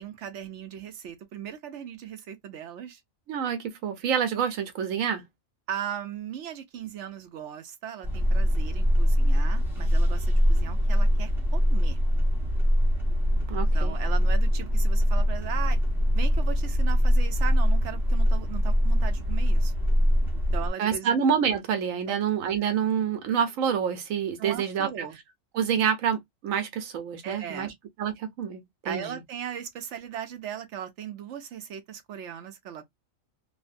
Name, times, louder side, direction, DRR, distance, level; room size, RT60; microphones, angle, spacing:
voice 1, 0.0-3.0 4.0-4.1 5.7-12.0 13.7-15.8 16.1-19.7 20.5-21.1 22.1-22.2 24.4-25.2 27.2-27.7 28.8-32.9, right 9 dB, 65° right, 0.9 m, -38 dB
voice 2, 3.3-5.2 13.5-13.9 20.8-25.1 25.5-27.7 28.0-29.2, right 7 dB, 80° right, 1.1 m, -27 dB
sound 1, 8.0-20.7, equal, ahead, 0.8 m, -23 dB
3.0 x 2.1 x 2.5 m
omnidirectional pair, 1.4 m